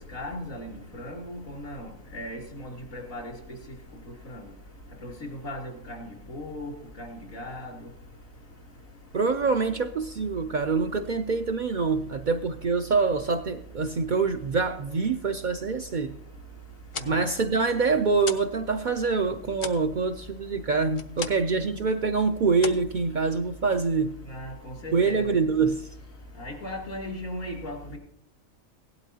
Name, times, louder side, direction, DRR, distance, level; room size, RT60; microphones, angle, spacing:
voice 1, 0.1-3.3 4.3-4.4 5.0-5.1 5.4-6.7 7.0-7.7 17.0-17.2 24.3-25.3 26.4-27.8, left 1 dB, 90° left, -1 dB, 3.2 m, -37 dB
voice 2, 9.1-16.1 17.1-24.2 24.9-25.9, right 4 dB, 60° right, 7 dB, 0.5 m, -25 dB
sound 1, 16.7-18.6 18.9-21.6 21.9-22.2 22.5-23.6, left 4 dB, 55° left, 0.3 m, -38 dB
17.0 x 12.0 x 2.8 m, 0.69 s
omnidirectional pair, 1.4 m